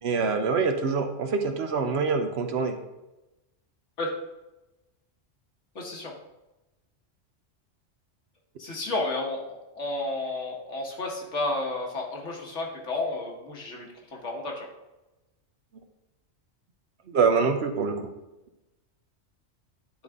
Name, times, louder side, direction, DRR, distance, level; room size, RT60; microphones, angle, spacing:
voice 1, 0.0-2.8 17.1-18.1, right 5 dB, 65° right, 6 dB, 1.0 m, -25 dB
voice 2, 5.7-6.1 8.6-14.7, left 2 dB, 75° left, -1 dB, 1.8 m, -32 dB
9.9 x 3.9 x 3.6 m, 0.99 s
omnidirectional pair, 1.2 m